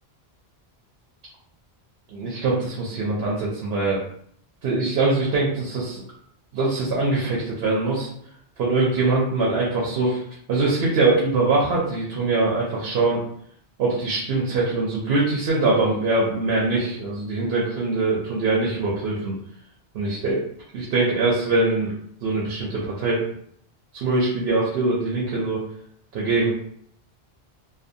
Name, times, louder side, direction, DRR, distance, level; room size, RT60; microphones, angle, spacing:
voice 1, 2.1-4.0 4.6-6.0 6.5-8.1 8.6-10.2 10.5-13.2 13.8-19.3 19.9-20.4 20.7-21.9 22.2-23.3 23.9-25.6 26.1-26.5, right 3 dB, 75° right, -4 dB, 0.8 m, -23 dB
2.6 x 2.1 x 2.5 m, 0.67 s
omnidirectional pair, 1.0 m